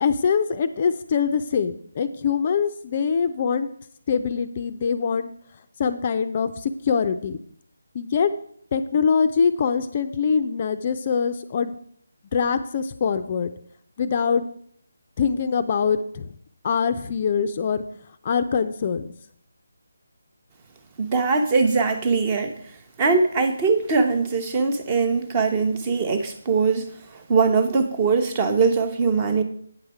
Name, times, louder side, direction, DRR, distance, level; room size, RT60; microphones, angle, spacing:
voice 1, 0.0-3.7 4.1-5.3 5.8-7.4 7.9-8.3 8.7-11.8 12.3-13.5 14.0-14.5 15.2-16.4 16.6-17.8 18.2-19.0, left 6 dB, 30° left, 10 dB, 0.4 m, -23 dB
voice 2, 21.0-22.5 23.0-26.9 27.3-29.4, right 4 dB, 20° right, 7 dB, 0.8 m, -21 dB
8.6 x 6.4 x 4.9 m, 0.63 s
figure-of-eight pair, 165°, 0 cm